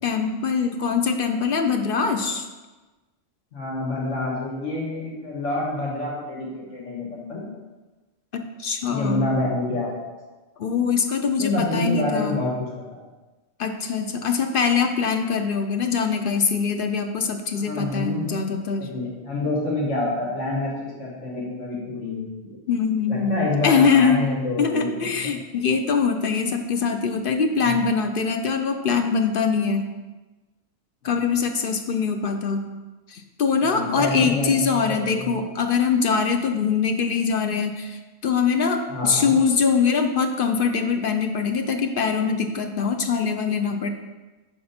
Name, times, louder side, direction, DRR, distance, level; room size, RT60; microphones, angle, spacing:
voice 1, 0.0-2.5 8.3-9.3 10.6-12.4 13.6-18.9 22.7-24.2 24.6-29.9 31.0-32.6 33.1-43.9, left 5 dB, 55° left, 6 dB, 0.8 m, -23 dB
voice 2, 3.5-7.5 8.9-10.2 11.4-13.0 17.6-18.4 18.8-22.6 23.1-25.2 27.7-27.8 33.7-35.3 38.9-39.3, left 2 dB, 75° left, -5 dB, 2.0 m, -27 dB
8.9 x 5.6 x 4.3 m, 1.2 s
omnidirectional pair, 1.2 m